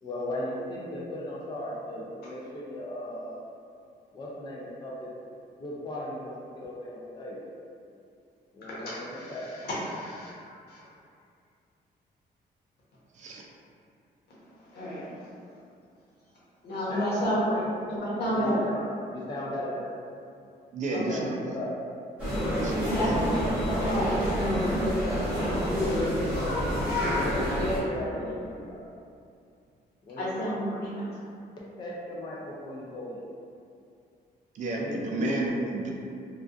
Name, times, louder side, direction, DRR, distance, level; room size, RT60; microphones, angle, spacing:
voice 1, 0.0-3.3 4.1-5.1 5.6-7.4 8.5-9.5 16.9-17.7 18.2-18.8 19.1-19.9 21.1-21.7 25.7-28.9 30.1-30.3 31.8-33.2 34.7-35.5, left 1 dB, 25° left, -5 dB, 0.4 m, -36 dB
voice 2, 9.1-10.4 10.7-10.8 14.7-15.2 16.6-17.4 17.9-18.6 20.9-21.2 22.9-26.0 28.3-28.4 30.2-31.0, equal, 75° left, -9 dB, 1.0 m, -31 dB
voice 3, 20.7-21.6 22.5-23.2 34.5-35.9, right 2 dB, 45° right, -2 dB, 0.4 m, -31 dB
sound 1, 22.2-27.8, equal, 10° right, 1.0 m, -28 dB
2.4 x 2.3 x 2.4 m, 2.4 s
cardioid pair, 155°, 17 cm